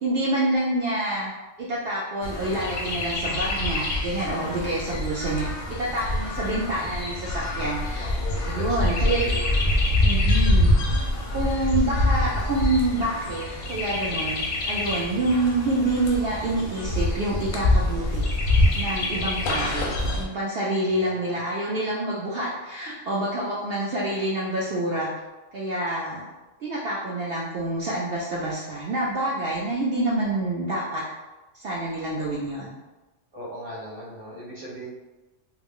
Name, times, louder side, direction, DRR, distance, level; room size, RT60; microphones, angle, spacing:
voice 1, 0.0-1.3 1.6-8.1 8.4-9.3 10.0-10.7 11.3-14.4 14.7-18.2 18.8-25.1 25.5-26.3 26.6-31.0 31.5-32.8, right 1 dB, 65° right, -6 dB, 0.7 m, -27 dB
Chirp tweet, 2.2-20.2, left 1 dB, 55° left, 0.6 m, -25 dB
voice 2, 7.9-9.9 20.9-21.4 33.3-34.8, equal, 20° right, -7 dB, 1.0 m, -39 dB
2.4 x 2.1 x 3.5 m, 1.1 s
omnidirectional pair, 1.2 m